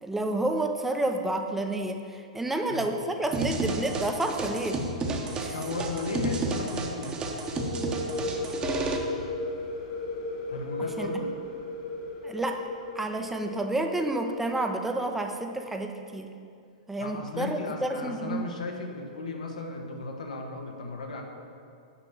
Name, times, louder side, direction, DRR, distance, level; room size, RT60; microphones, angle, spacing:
voice 1, 0.0-4.8 5.4-5.6 11.0-11.2 12.2-12.6 12.9-16.3 16.9-18.4, right 2 dB, 5° right, 4 dB, 0.6 m, -30 dB
voice 2, 2.5-2.8 5.5-7.2 10.5-11.3 17.0-21.2, left 3 dB, 85° left, 2 dB, 1.3 m, -35 dB
sound 1, 3.3-9.0, right 2 dB, 25° right, 1.0 m, -31 dB
sound 2, 7.4-15.0, left 2 dB, 50° left, 1.6 m, -36 dB
7.1 x 5.7 x 7.1 m, 2.4 s
hypercardioid pair, 120°, 4 cm